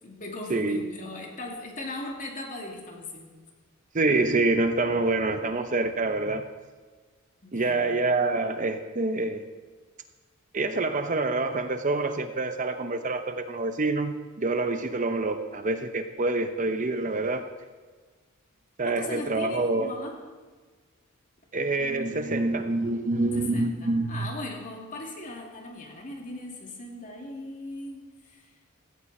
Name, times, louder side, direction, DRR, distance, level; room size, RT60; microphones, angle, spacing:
voice 1, 0.0-3.3 7.4-7.9 18.8-20.2 23.4-28.5, left 2 dB, 35° left, 0 dB, 2.7 m, -38 dB
voice 2, 3.9-6.4 7.5-9.4 10.5-17.4 18.8-19.9 21.5-24.3, right 2 dB, 35° right, 8 dB, 0.8 m, -26 dB
16.5 x 16.0 x 4.3 m, 1.4 s
head